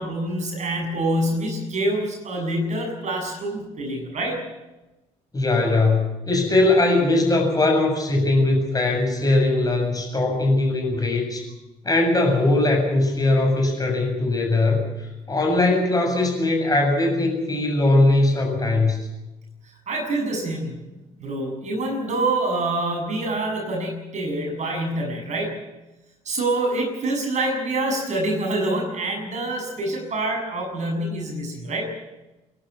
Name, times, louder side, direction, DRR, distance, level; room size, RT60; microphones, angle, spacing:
voice 1, 0.0-4.4 19.6-20.8 21.2-25.5 26.2-31.8, right 1 dB, 40° right, 2 dB, 7.3 m, -26 dB
voice 2, 5.3-11.4 11.8-19.0, left 2 dB, 20° left, 1 dB, 7.4 m, -20 dB
27.5 x 12.0 x 9.9 m, 1.0 s
figure-of-eight pair, 50°, 18 cm